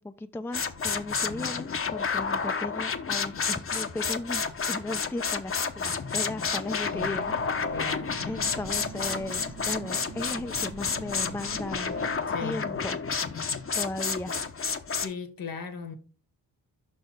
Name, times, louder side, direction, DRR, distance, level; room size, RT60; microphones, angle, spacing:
voice 1, 0.0-7.8 8.2-12.0 12.4-13.0 13.7-14.4, left 2 dB, 5° left, 0.5 m, -36 dB
sound 1, 0.5-15.1, left 5 dB, 35° left, 0.8 m, -30 dB
sound 2, 6.9-12.2, right 7 dB, 50° right, 0.7 m, -44 dB
voice 2, 7.7-8.2 12.3-12.8 14.9-15.9, left 5 dB, 65° left, 1.4 m, -37 dB
5.6 x 4.5 x 5.0 m
cardioid pair, 70°, 37 cm